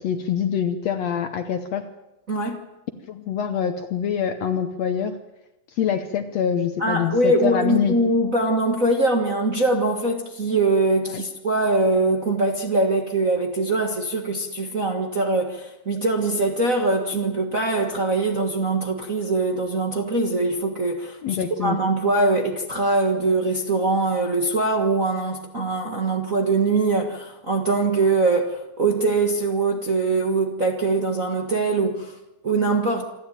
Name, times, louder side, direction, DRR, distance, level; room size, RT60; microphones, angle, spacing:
voice 1, 0.0-1.9 3.1-5.2 5.7-8.0 11.1-11.2 21.2-21.8, left 8 dB, 65° left, 8 dB, 1.8 m, -25 dB
voice 2, 2.3-2.6 6.8-32.1 32.4-33.0, right 2 dB, 35° right, 2 dB, 1.3 m, -22 dB
27.0 x 12.5 x 9.1 m, 0.98 s
omnidirectional pair, 3.9 m